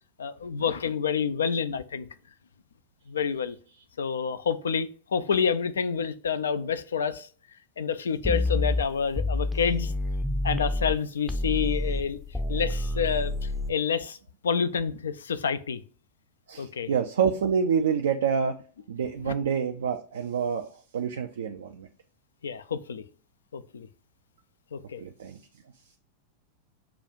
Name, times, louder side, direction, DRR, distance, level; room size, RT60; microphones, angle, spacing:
voice 1, 0.2-2.1 3.1-3.6 4.0-7.3 7.8-9.9 10.4-12.2 12.5-14.2 14.4-15.8 16.6-16.9 19.2-19.3 22.4-23.0 23.5-23.9 24.7-25.0, left 6 dB, 70° left, 0.4 m, -28 dB
sound 1, 8.2-11.0 11.3-13.7, left 1 dB, 5° left, 0.5 m, -28 dB
voice 2, 16.5-18.6 18.9-20.7 20.9-21.9 25.0-25.4, right 6 dB, 65° right, 0.4 m, -27 dB
6.8 x 2.3 x 2.6 m
figure-of-eight pair, 90°, 0 cm